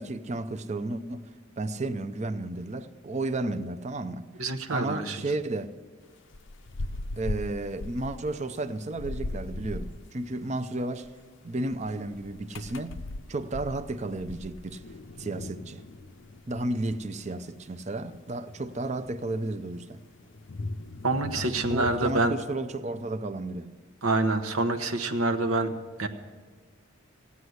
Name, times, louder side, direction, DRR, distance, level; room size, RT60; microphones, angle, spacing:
voice 1, 0.0-4.3 4.7-5.8 7.2-11.1 11.4-13.0 13.3-14.8 15.2-15.8 16.5-20.0 21.7-23.7, right 2 dB, 30° right, 0.5 m, -33 dB
voice 2, 4.4-5.2 21.0-22.3 24.0-25.7 26.0-26.1, right 2 dB, 80° right, 1.1 m, -26 dB
sound 1, 6.1-10.1 10.9-11.1 11.7-22.3, left 2 dB, 60° left, 0.6 m, -39 dB
16.0 x 9.7 x 8.0 m
head